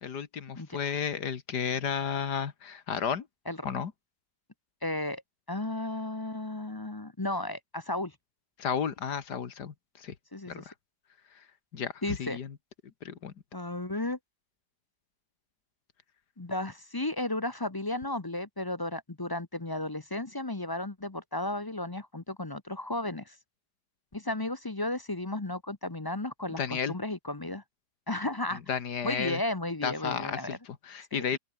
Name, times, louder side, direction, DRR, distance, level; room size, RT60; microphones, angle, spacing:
voice 1, 0.0-3.3 3.6-3.9 8.6-10.1 10.5-10.7 11.3-11.4 11.7-12.6 13.0-13.3 26.5-26.9 28.5-29.4 29.8-31.4, left 7 dB, 80° left, 2.2 m, -33 dB
voice 2, 4.8-5.2 5.5-8.1 10.3-10.6 12.0-12.4 13.5-14.2 16.4-23.3 24.1-27.6 28.1-28.6 29.0-30.6 31.1-31.4, left 1 dB, 20° left, 0.8 m, -34 dB
open air
omnidirectional pair, 1.7 m